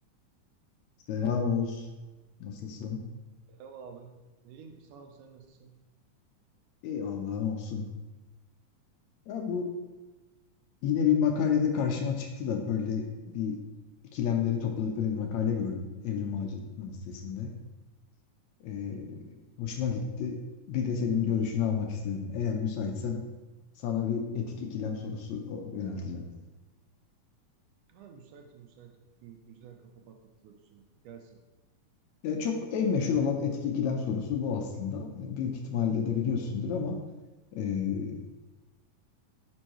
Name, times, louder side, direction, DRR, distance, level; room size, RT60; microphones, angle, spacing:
voice 1, 1.1-1.9 2.4-3.0 6.8-7.9 9.3-9.7 10.8-13.6 14.1-17.5 18.6-20.4 20.7-23.2 23.8-26.2 32.2-37.0 37.5-38.2, left 7 dB, 75° left, 3 dB, 1.8 m, -30 dB
voice 2, 3.5-5.8 27.9-30.2 30.4-31.4, right 6 dB, 85° right, 4 dB, 2.1 m, -51 dB
11.0 x 5.4 x 3.0 m, 1.1 s
omnidirectional pair, 3.7 m